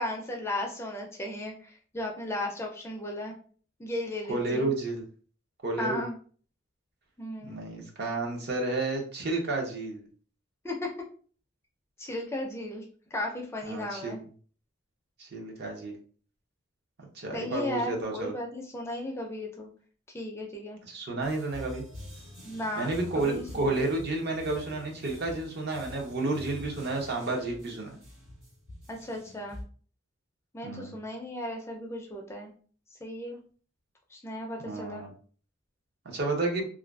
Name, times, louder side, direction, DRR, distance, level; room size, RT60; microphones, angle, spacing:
voice 1, 0.0-3.3 3.8-4.7 5.8-6.1 7.2-7.6 10.6-10.9 12.0-12.8 13.1-14.2 17.3-19.7 20.1-20.8 22.4-22.9 23.1-23.8 28.9-29.6 30.5-32.5 33.0-33.4 34.1-35.0, left 1 dB, 15° left, 1 dB, 0.3 m, -35 dB
voice 2, 4.3-5.0 5.6-6.0 7.4-10.1 13.7-14.2 15.2-16.0 17.1-18.3 20.8-21.8 22.8-28.0 30.6-31.0 34.6-35.1 36.0-36.7, right 2 dB, 55° right, 1 dB, 0.6 m, -31 dB
sound 1, 21.2-29.6, left 1 dB, 85° right, 1.5 m, -46 dB
2.4 x 2.3 x 2.2 m, 0.43 s
head